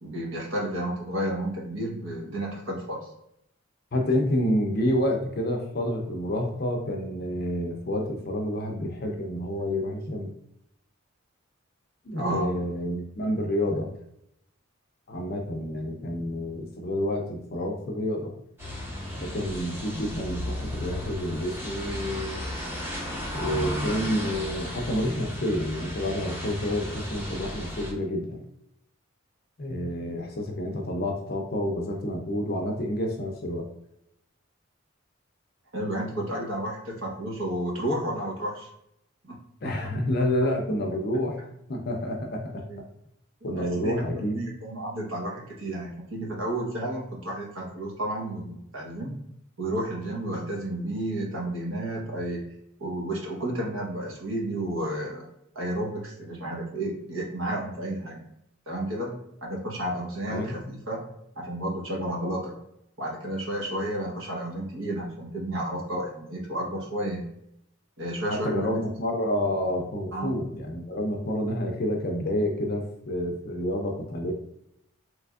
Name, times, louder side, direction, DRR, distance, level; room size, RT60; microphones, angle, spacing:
voice 1, 0.0-3.1 12.1-12.5 35.7-38.7 39.2-39.8 40.2-40.3 42.7-42.8 43.5-49.1 49.6-52.4 52.8-55.3 55.5-58.2 58.7-61.1 61.4-62.5 63.0-67.2 68.0-68.8 70.1-70.3, right 1 dB, 65° right, -2 dB, 1.0 m, -32 dB
voice 2, 3.9-10.3 12.1-13.9 15.1-18.3 19.2-22.5 23.3-28.4 29.6-33.7 39.6-42.6 43.4-44.3 60.3-60.6 68.3-74.3, left 1 dB, 45° left, 2 dB, 0.5 m, -29 dB
sound 1, 18.6-27.9, left 1 dB, 10° right, 0.6 m, -34 dB
3.4 x 3.0 x 2.3 m, 0.77 s
head